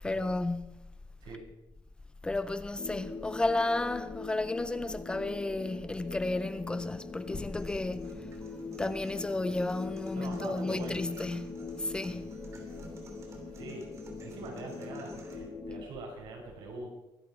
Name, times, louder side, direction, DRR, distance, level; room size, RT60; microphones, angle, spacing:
voice 1, 0.0-0.8 2.2-8.1 8.8-12.3, left 2 dB, 10° left, 0.5 m, -33 dB
sound 1, 2.8-15.8, left 4 dB, 35° left, 2.2 m, -43 dB
sound 2, 7.3-15.3, right 3 dB, 35° right, 3.1 m, -52 dB
voice 2, 10.1-11.1 13.5-13.9 14.2-16.9, right 2 dB, 85° right, 5.9 m, -43 dB
23.0 x 10.5 x 4.7 m
cardioid pair, 175°, 8 cm